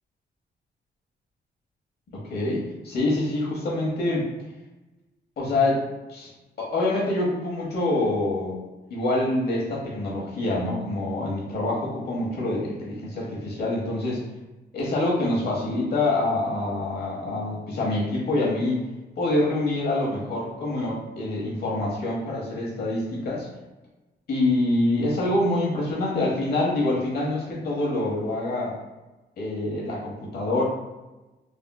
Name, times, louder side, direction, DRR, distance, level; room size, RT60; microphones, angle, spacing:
voice 1, 2.1-4.3 5.4-5.8 6.1-6.3 6.6-8.6 8.9-14.2 14.7-18.8 19.2-23.5 24.3-28.7 29.4-30.7, left 2 dB, 60° left, -4 dB, 1.0 m, -26 dB
3.5 x 2.5 x 2.2 m, 1.1 s
wide cardioid pair, 155°, 18 cm